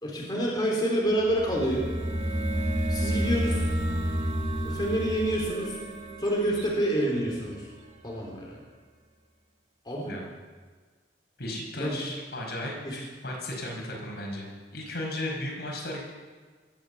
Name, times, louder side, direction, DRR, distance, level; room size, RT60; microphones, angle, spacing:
voice 1, 0.0-1.9 2.9-3.6 4.6-5.8 6.2-7.6 8.0-8.6 9.9-10.2 11.8-12.0 12.8-13.0, right 1 dB, 25° left, -2 dB, 3.3 m, -28 dB
sound 1, 1.2-7.9, right 1 dB, 40° right, 1.9 m, -30 dB
voice 2, 11.4-16.0, left 1 dB, 65° left, -1 dB, 5.0 m, -35 dB
21.5 x 8.3 x 8.2 m, 1.5 s
head